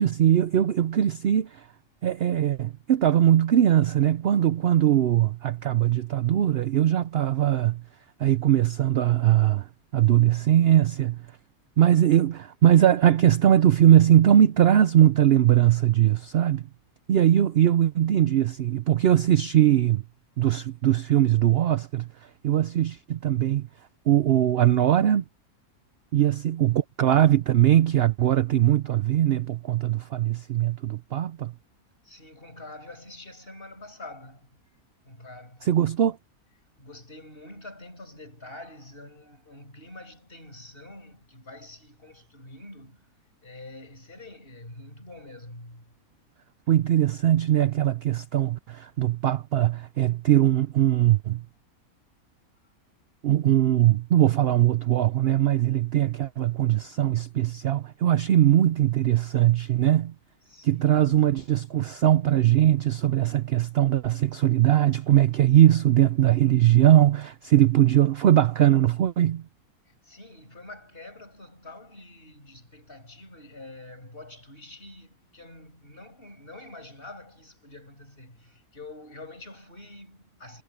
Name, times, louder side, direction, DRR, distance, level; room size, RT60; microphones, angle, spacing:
voice 1, 0.0-1.7 2.0-7.8 8.2-9.7 9.9-11.2 11.8-16.6 17.1-20.0 20.4-22.1 22.4-23.7 24.1-25.2 26.1-31.5 35.6-36.2 46.7-51.4 53.2-60.1 60.6-69.4, right 11 dB, 60° right, 0.6 m, -21 dB
voice 2, 32.0-34.6 35.0-35.7 36.8-43.1 43.4-45.9 60.5-61.4 69.9-80.6, left 2 dB, 40° left, 7.5 m, -46 dB
omnidirectional pair, 1.6 m